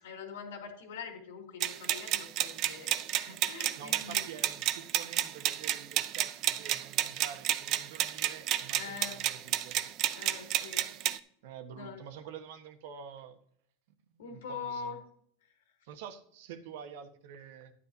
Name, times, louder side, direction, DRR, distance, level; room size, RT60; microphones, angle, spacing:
voice 1, 0.0-4.2 8.8-9.2 10.1-10.9 11.7-12.0 14.2-15.0, left 5 dB, 90° left, 3 dB, 2.7 m, -43 dB
sound 1, 1.6-11.2, right 13 dB, 45° right, 0.6 m, -31 dB
voice 2, 3.8-9.9 11.4-13.4 14.1-14.9 15.8-17.7, right 8 dB, 70° right, 8 dB, 1.3 m, -48 dB
11.0 x 9.8 x 2.8 m, 0.66 s
supercardioid pair, 130°, 0 cm